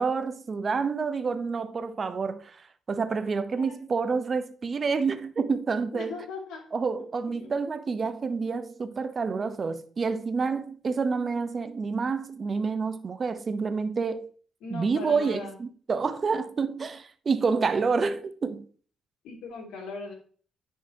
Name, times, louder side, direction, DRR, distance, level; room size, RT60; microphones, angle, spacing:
voice 1, 0.0-6.2 6.7-14.3 14.7-18.7, right 5 dB, 40° right, 0.8 m, -28 dB
voice 2, 3.5-3.9 5.9-6.6 7.4-7.5 14.6-15.6 19.2-20.1, left 3 dB, 85° left, 2.4 m, -39 dB
10.0 x 4.7 x 2.8 m
cardioid pair, 90°, 0 cm